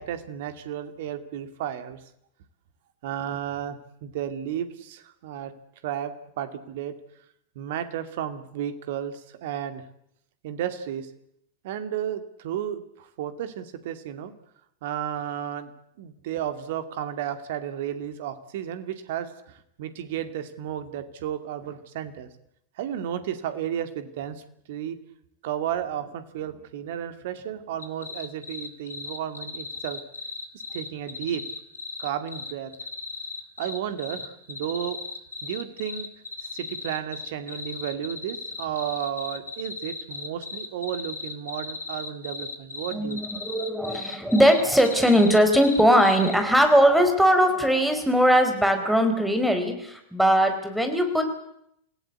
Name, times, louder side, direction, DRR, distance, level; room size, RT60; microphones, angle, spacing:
voice 1, 0.0-2.0 3.0-5.5 5.8-7.0 7.6-9.8 10.4-11.1 11.6-14.3 14.8-15.7 16.0-19.3 19.8-22.3 22.8-24.4 24.7-25.0 25.4-30.0 30.7-31.4 32.0-32.7 33.6-35.0 35.4-36.1 36.5-43.2, right 10 dB, 55° right, 9 dB, 2.4 m, -33 dB
sound 1, 27.8-46.3, left 4 dB, 75° left, 2.3 m, -36 dB
voice 2, 42.9-51.2, equal, ahead, 6 dB, 4.6 m, -20 dB
27.5 x 17.0 x 8.3 m, 0.75 s
figure-of-eight pair, 90°, 0 cm